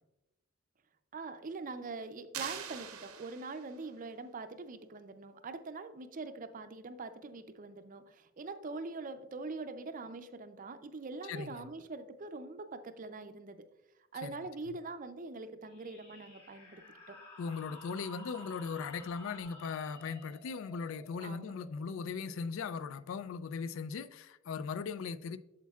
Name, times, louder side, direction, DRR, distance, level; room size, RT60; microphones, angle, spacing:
voice 1, 1.1-13.6 14.1-16.8 17.1-17.2 21.2-21.5, right 3 dB, 40° right, 0.5 m, -43 dB
sound 1, 2.3-3.9, right 8 dB, 85° right, 0.8 m, -43 dB
voice 2, 11.3-11.7 14.2-14.4 17.4-25.4, left 5 dB, 60° left, 0.3 m, -39 dB
sound 2, 15.6-22.9, left 1 dB, 30° left, 2.3 m, -54 dB
8.4 x 7.2 x 2.3 m
head